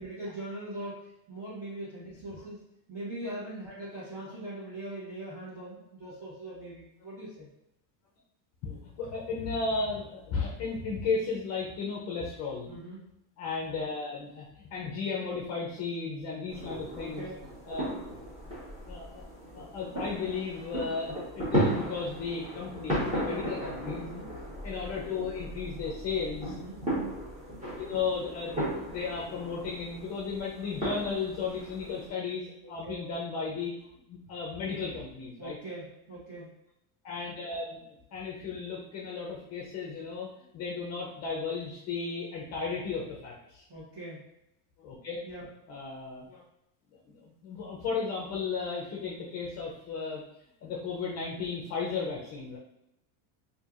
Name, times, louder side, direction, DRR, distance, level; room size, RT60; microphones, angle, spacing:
voice 1, 0.0-2.6 2.9-7.5 12.7-13.1 17.0-17.4 23.9-24.3 26.4-26.8 32.6-33.0 35.4-36.5 43.7-44.2 45.2-45.5, right 1 dB, 30° right, -11 dB, 1.3 m, -41 dB
voice 2, 8.6-12.7 13.4-17.3 17.7-18.0 18.9-19.2 19.5-24.0 24.6-26.5 27.8-28.6 28.9-33.7 34.1-35.6 37.0-37.8 38.1-40.3 40.5-43.6 44.8-45.2 45.7-46.4 46.9-50.2 50.6-52.6, left 5 dB, 35° left, -3 dB, 0.5 m, -34 dB
sound 1, 16.5-32.1, right 1 dB, 15° right, 1.1 m, -35 dB
4.4 x 2.7 x 2.4 m, 0.86 s
cardioid pair, 155°, 47 cm